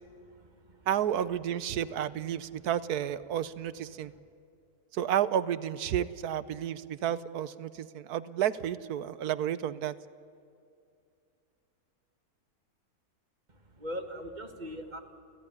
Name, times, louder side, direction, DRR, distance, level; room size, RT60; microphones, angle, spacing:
voice 1, 0.2-0.9 3.9-4.0 13.5-15.0, equal, 30° right, 5 dB, 2.0 m, -41 dB
voice 2, 0.9-4.1 4.9-9.9, right 10 dB, 80° right, 16 dB, 1.3 m, -31 dB
29.0 x 16.5 x 9.9 m, 2.5 s
omnidirectional pair, 1.6 m